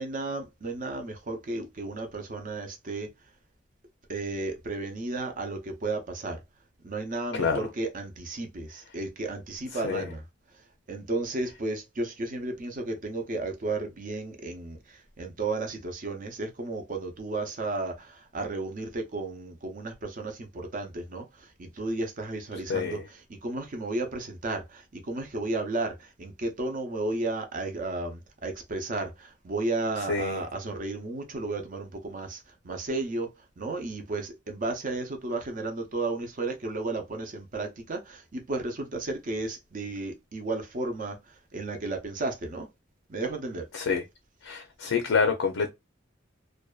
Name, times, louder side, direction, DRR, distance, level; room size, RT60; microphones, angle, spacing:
voice 1, 0.0-3.1 4.1-6.4 6.8-10.2 10.9-42.7 43.1-43.7, right 2 dB, 45° right, 0.6 m, -33 dB
voice 2, 30.1-30.4 43.7-44.0 44.4-45.7, left 5 dB, 75° left, 0.5 m, -27 dB
2.6 x 2.2 x 2.3 m
head